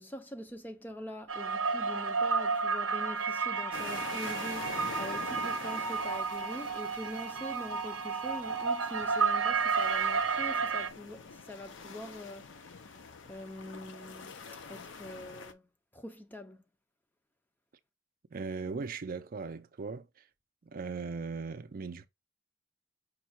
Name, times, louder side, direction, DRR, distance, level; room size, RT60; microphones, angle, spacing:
voice 1, 0.0-13.0 13.3-14.4 14.7-15.6 15.9-16.6, left 1 dB, 10° left, 0.5 m, -44 dB
sound 1, 1.3-10.9, right 5 dB, 85° right, 0.6 m, -31 dB
sound 2, 3.7-15.5, left 5 dB, 65° left, 0.6 m, -46 dB
voice 2, 18.3-20.2 20.6-22.1, right 4 dB, 45° right, 0.4 m, -38 dB
5.4 x 2.3 x 4.3 m
head